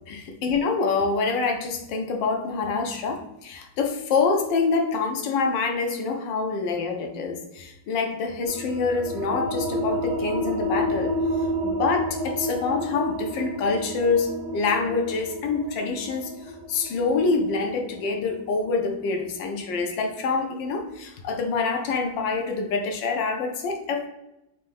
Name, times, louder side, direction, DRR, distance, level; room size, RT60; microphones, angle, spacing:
voice 1, 0.1-24.1, left 4 dB, 75° left, 4 dB, 1.2 m, -26 dB
sound 1, 8.5-19.7, equal, 65° right, 0.9 m, -30 dB
4.3 x 2.6 x 3.4 m, 0.89 s
omnidirectional pair, 2.2 m